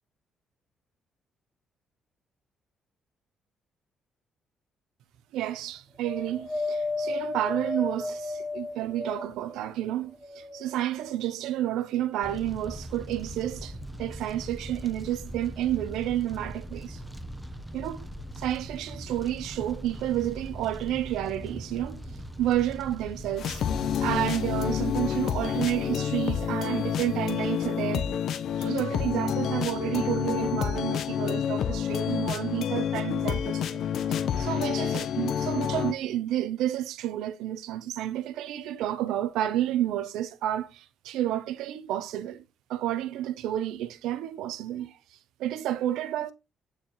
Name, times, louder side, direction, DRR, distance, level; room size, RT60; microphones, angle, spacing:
voice 1, 5.3-17.0 17.7-18.1 18.4-22.0 22.4-23.6 24.0-28.1 28.6-33.8 34.1-42.4 42.7-45.0 45.4-46.3, right 12 dB, 85° right, 0.7 m, -30 dB
Wind, 6.0-9.5 10.1-11.1 11.9-12.0, left 2 dB, 20° left, 5.0 m, -33 dB
Fire, 12.2-24.2, equal, ahead, 0.9 m, -40 dB
sound 1, 23.4-35.9, left 8 dB, 70° left, 0.6 m, -28 dB
9.0 x 4.3 x 3.0 m
cardioid pair, 90°, 0 cm